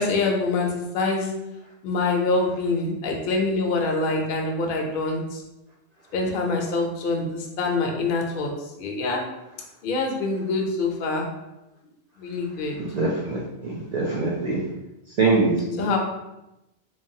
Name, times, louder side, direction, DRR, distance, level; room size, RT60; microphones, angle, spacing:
voice 1, 0.0-1.3 1.8-5.4 6.1-9.2 9.8-11.3 12.2-12.7 15.8-16.0, left 3 dB, 60° left, 1 dB, 0.6 m, -25 dB
voice 2, 12.8-14.6 15.2-15.9, right 3 dB, 65° right, -4 dB, 0.4 m, -24 dB
3.1 x 2.2 x 2.6 m, 0.93 s
omnidirectional pair, 1.2 m